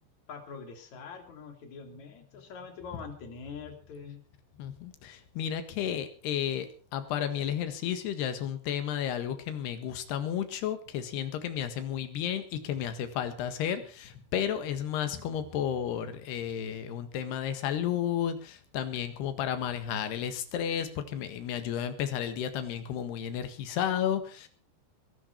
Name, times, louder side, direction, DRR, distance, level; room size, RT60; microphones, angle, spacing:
voice 1, 0.3-4.2, left 5 dB, 45° left, 5 dB, 3.5 m, -44 dB
voice 2, 4.6-6.7 6.9-24.5, left 9 dB, 70° left, 9 dB, 3.5 m, -32 dB
21.0 x 12.0 x 4.6 m, 0.37 s
omnidirectional pair, 5.3 m